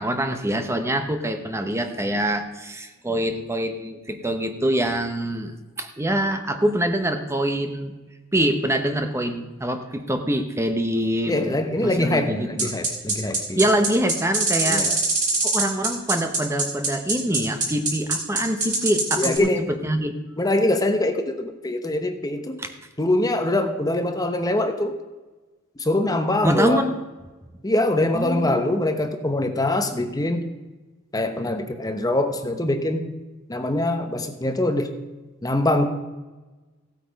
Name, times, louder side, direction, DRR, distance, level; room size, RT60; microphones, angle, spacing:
voice 1, 0.0-5.5 5.8-7.9 8.3-11.4 11.8-12.7 13.6-14.9 15.4-20.1 22.6-22.7 26.4-26.9 28.1-28.5, right 1 dB, 15° right, 6 dB, 0.9 m, -25 dB
voice 2, 11.3-13.6 14.7-15.0 19.2-19.6 20.4-22.6 23.0-24.9 25.8-26.9 27.6-30.4 31.1-33.0 33.5-34.9 35.4-35.9, left 1 dB, 20° left, 7 dB, 1.0 m, -23 dB
sound 1, 12.6-19.4, right 3 dB, 35° right, 3.9 m, -23 dB
16.0 x 8.5 x 5.3 m, 1.2 s
head